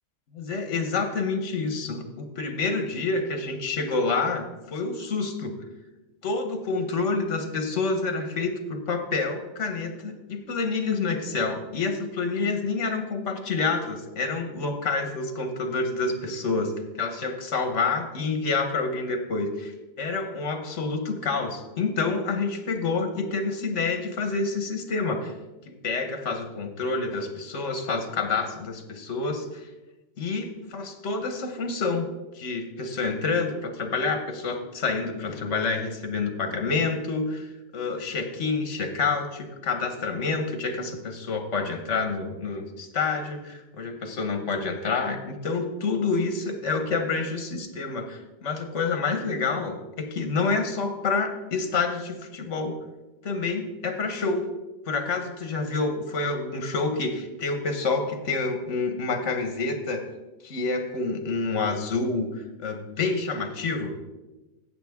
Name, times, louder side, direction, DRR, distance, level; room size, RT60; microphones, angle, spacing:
voice 1, 0.3-5.5 6.2-16.7 17.0-19.7 20.0-25.3 25.8-29.6 30.2-32.1 32.3-52.7 53.2-54.4 54.9-60.0 60.4-63.9, left 4 dB, 75° left, 7 dB, 1.5 m, -28 dB
15.5 x 7.0 x 3.6 m, 1.1 s
omnidirectional pair, 1.2 m